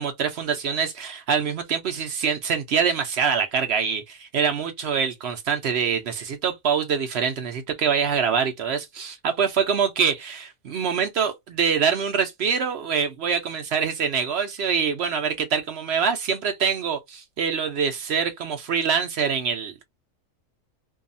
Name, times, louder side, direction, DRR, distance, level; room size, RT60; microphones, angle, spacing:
voice 1, 0.0-19.8, right 6 dB, 60° right, 0.7 m, -25 dB
2.7 x 2.3 x 2.5 m
omnidirectional pair, 1.6 m